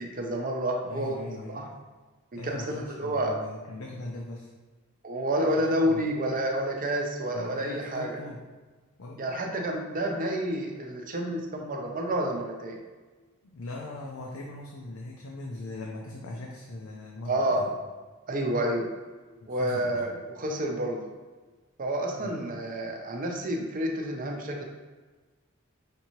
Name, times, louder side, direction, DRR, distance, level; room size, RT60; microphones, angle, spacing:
voice 1, 0.0-1.7 2.3-3.4 5.0-8.1 9.2-12.8 17.3-17.6 18.3-18.9 19.5-21.0 21.8-24.6, right 1 dB, 40° right, 1 dB, 0.6 m, -29 dB
voice 2, 0.8-1.7 2.4-4.5 5.5-6.1 7.3-8.4 9.0-9.5 13.4-17.7 19.4-20.1 22.2-22.6, left 2 dB, 75° left, -1 dB, 0.5 m, -40 dB
5.1 x 2.7 x 3.0 m, 1.3 s
head